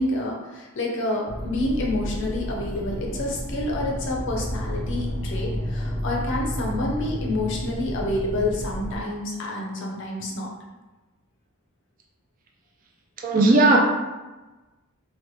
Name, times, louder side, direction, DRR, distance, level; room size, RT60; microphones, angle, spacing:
voice 1, 0.0-10.5, left 1 dB, 55° left, -2 dB, 0.6 m, -28 dB
sound 1, 1.3-9.0, equal, 10° left, 0.6 m, -31 dB
voice 2, 13.2-13.8, right 2 dB, 35° right, 0 dB, 0.3 m, -16 dB
3.0 x 2.1 x 3.0 m, 1.2 s
head